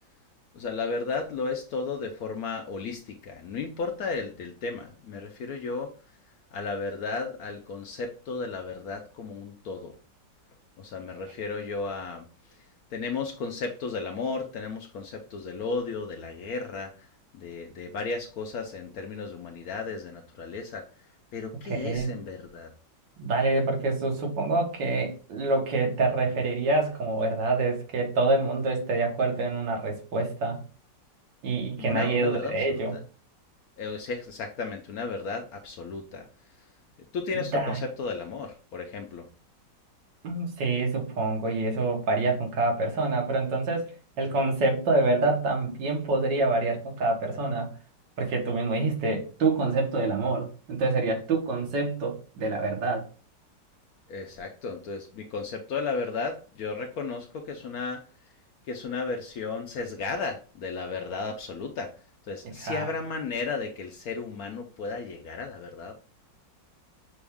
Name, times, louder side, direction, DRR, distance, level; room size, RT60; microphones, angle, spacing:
voice 1, 0.5-5.9 6.5-9.9 10.8-12.2 12.9-17.1 17.3-20.9 21.3-22.7 31.8-33.0 33.8-36.3 37.1-39.3 54.1-58.0 58.7-61.9 62.3-66.0, left 4 dB, 70° left, 4 dB, 0.9 m, -34 dB
voice 2, 21.7-22.1 23.2-30.6 31.4-32.9 37.3-37.8 40.2-43.9 44.2-47.7 48.2-53.0 62.6-62.9, right 3 dB, 75° right, 2 dB, 1.8 m, -26 dB
6.0 x 2.3 x 3.4 m, 0.38 s
omnidirectional pair, 1.9 m